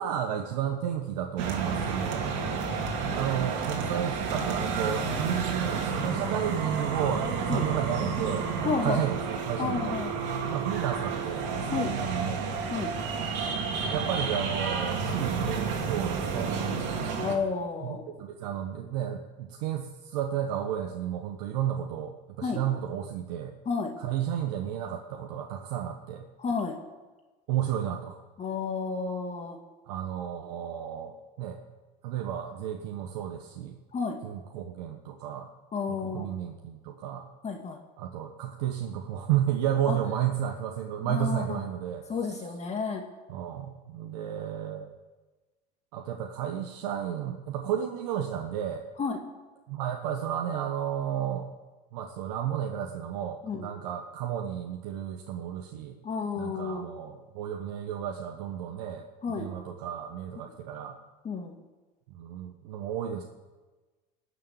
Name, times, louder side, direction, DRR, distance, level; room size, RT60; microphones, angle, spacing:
voice 1, 0.0-2.3 3.1-10.0 10.5-12.4 13.8-16.5 17.8-23.5 24.0-26.2 27.5-28.2 29.9-31.6 32.0-33.8 34.2-35.5 36.0-37.3 38.0-42.0 43.3-44.9 45.9-48.8 49.7-51.5 51.9-56.0 56.4-61.0 62.1-63.2, right 10 dB, 80° right, 3 dB, 1.2 m, -32 dB
sound 1, 1.4-17.4, right 5 dB, 65° right, 2.8 m, -31 dB
voice 2, 8.6-9.0 9.6-10.1 11.7-11.9 12.7-12.9 17.2-18.0 22.4-22.6 23.7-23.9 26.4-26.8 28.4-29.6 33.9-34.2 35.7-36.3 37.4-37.8 39.9-40.0 41.0-41.6 42.1-43.0 49.0-49.2 53.4-53.7 56.0-56.8 59.2-59.5 61.2-61.6, left 5 dB, 35° left, 3 dB, 2.1 m, -31 dB
20.0 x 6.7 x 9.5 m, 1.2 s
supercardioid pair, 95°, 21 cm